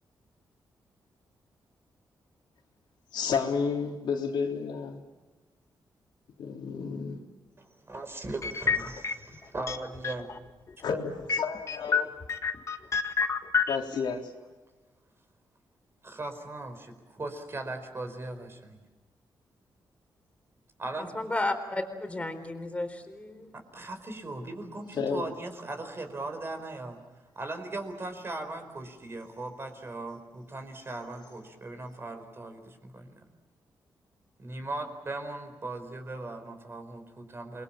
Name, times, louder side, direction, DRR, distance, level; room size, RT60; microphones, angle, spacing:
voice 1, 3.1-5.0 6.4-7.2 10.8-12.1 13.7-14.3 24.9-25.2, left 5 dB, 80° left, 1 dB, 3.7 m, -31 dB
voice 2, 7.6-10.4 12.8-12.9 16.0-18.8 20.8-21.2 23.5-27.0 27.4-33.2 34.4-37.6, right 2 dB, 30° right, 7 dB, 4.6 m, -39 dB
sound 1, 8.4-9.4 9.7-10.4 10.7-10.8 11.3-13.8, left 5 dB, 40° left, 1.8 m, -28 dB
voice 3, 21.1-23.5, left 2 dB, 15° left, 7 dB, 4.3 m, -33 dB
28.5 x 22.0 x 7.4 m, 1.2 s
cardioid pair, 105°, 8 cm